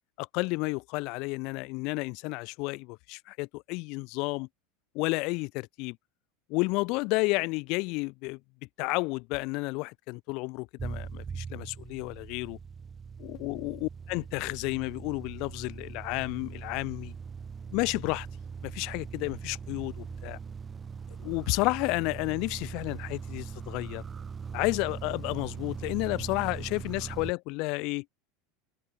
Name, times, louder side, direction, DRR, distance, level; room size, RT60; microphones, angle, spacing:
voice 1, 0.2-4.5 4.9-6.0 6.5-8.4 8.8-12.6 13.2-17.1 17.7-18.3 18.6-20.4 21.2-24.0 24.5-28.0, left 27 dB, 55° left, 2.1 m, -31 dB
sound 1, 10.8-27.3, right 6 dB, 25° right, 5.0 m, -41 dB
hypercardioid pair, 80°, 0 cm